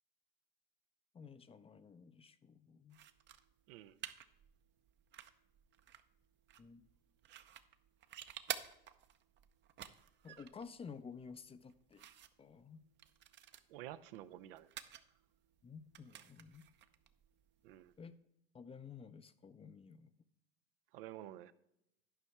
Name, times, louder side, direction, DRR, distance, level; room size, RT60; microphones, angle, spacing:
voice 1, 1.1-3.0 6.6-6.8 10.2-12.1 12.4-12.8 15.6-16.7 18.0-18.2 18.5-20.2, left 5 dB, 20° left, 0.5 m, -53 dB
sound 1, 2.9-18.1, right 10 dB, 40° right, 0.7 m, -52 dB
voice 2, 13.7-14.7 17.6-17.9 20.9-21.5, right 13 dB, 70° right, 0.6 m, -50 dB
11.0 x 5.3 x 4.7 m
hypercardioid pair, 85°, 29 cm